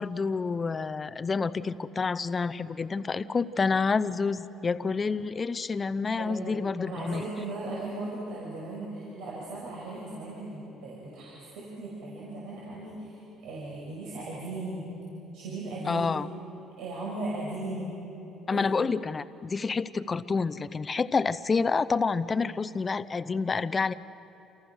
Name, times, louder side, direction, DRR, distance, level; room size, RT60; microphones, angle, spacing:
voice 1, 0.0-7.2 15.9-16.3 18.5-23.9, left 4 dB, 20° left, 14 dB, 0.6 m, -28 dB
voice 2, 6.2-6.6 6.9-14.9 15.3-16.1 16.8-17.9 18.5-18.7, right 2 dB, 80° right, -4 dB, 6.1 m, -37 dB
29.5 x 28.5 x 6.4 m, 3.0 s
cardioid pair, 175°, 0 cm